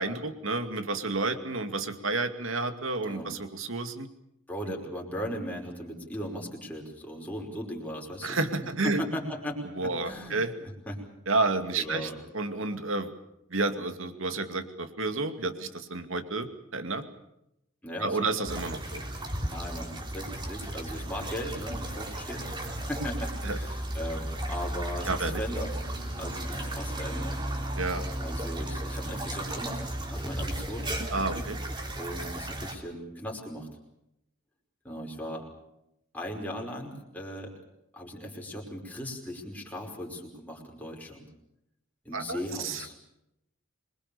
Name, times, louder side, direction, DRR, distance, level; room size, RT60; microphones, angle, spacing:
voice 1, 0.0-4.1 8.2-9.0 9.8-10.5 11.3-13.1 13.5-17.0 18.0-19.0 23.4-23.6 25.1-25.4 27.8-28.1 31.1-31.6 42.1-42.8, right 3 dB, 65° right, 8 dB, 2.4 m, -30 dB
voice 2, 4.5-8.4 8.8-10.4 10.9-11.0 11.8-12.2 17.8-18.3 19.4-25.7 26.2-27.4 28.2-30.9 32.0-33.7 34.8-35.5 36.1-37.5 37.9-41.3 42.0-42.9, equal, 10° left, -1 dB, 5.3 m, -38 dB
sound 1, 18.5-32.7, right 1 dB, 20° right, 3.6 m, -34 dB
26.5 x 22.5 x 7.0 m, 0.83 s
head